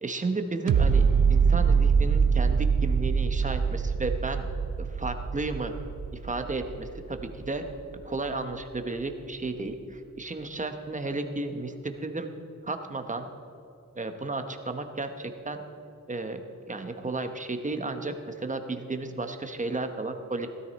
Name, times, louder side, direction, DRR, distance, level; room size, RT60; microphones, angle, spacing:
voice 1, 0.0-4.5 4.8-5.7 6.2-7.7 8.0-12.3 12.6-13.3 13.9-15.6 16.1-16.4 16.7-20.5, right 3 dB, 25° right, 7 dB, 1.0 m, -33 dB
sound 1, 0.7-7.7 8.2-8.3, right 6 dB, 90° right, 0.7 m, -24 dB
16.5 x 13.0 x 4.1 m, 2.9 s
wide cardioid pair, 155°, 31 cm